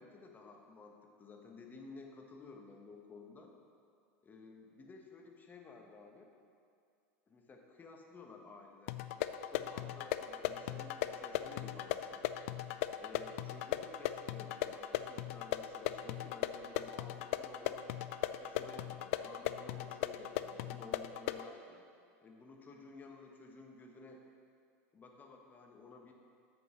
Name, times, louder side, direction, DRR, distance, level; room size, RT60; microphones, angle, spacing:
voice 1, 0.0-3.5 4.2-6.3 7.3-9.0 9.5-12.2 13.0-17.8 18.4-21.9 22.2-24.2 24.9-26.1, left 3 dB, 25° left, 2 dB, 1.2 m, -54 dB
sound 1, 8.9-21.5, left 12 dB, 70° left, 0.4 m, -38 dB
7.8 x 5.4 x 6.0 m, 2.4 s
hypercardioid pair, 105°, 8 cm